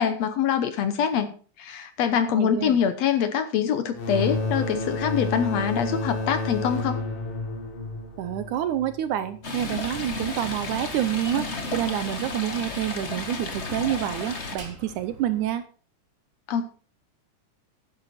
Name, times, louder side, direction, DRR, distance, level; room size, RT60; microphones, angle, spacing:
voice 1, 0.0-7.0 16.5-16.6, left 8 dB, 65° left, 10 dB, 1.8 m, -24 dB
voice 2, 2.4-2.8 8.2-15.6, right 12 dB, 75° right, 12 dB, 2.1 m, -28 dB
sound 1, 3.9-9.4, left 2 dB, 85° left, 4.4 m, -30 dB
Stream, 9.4-14.6, left 3 dB, 40° left, 0.9 m, -33 dB
Slam, 9.4-15.6, right 3 dB, 35° right, 1.5 m, -46 dB
11.5 x 10.5 x 4.3 m, 0.40 s
omnidirectional pair, 3.8 m